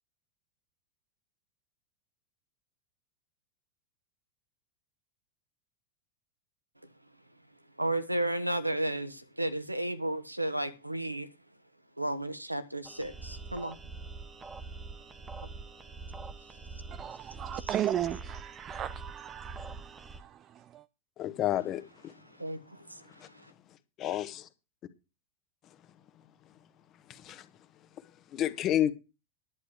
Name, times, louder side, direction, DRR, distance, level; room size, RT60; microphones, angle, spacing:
voice 1, 7.8-11.3 12.0-13.8 17.5-17.7 22.3-23.5, right 1 dB, 85° right, 1.3 m, -33 dB
sound 1, 12.9-20.2, right 4 dB, 15° right, 1.2 m, -44 dB
voice 2, 16.9-20.8, right 11 dB, 30° right, 0.5 m, -36 dB
voice 3, 21.2-22.2 23.2-23.3 24.0-24.5 27.1-27.5 28.0-28.9, left 12 dB, 35° left, 1.4 m, -31 dB
11.0 x 9.7 x 4.7 m
figure-of-eight pair, 90°, 0 cm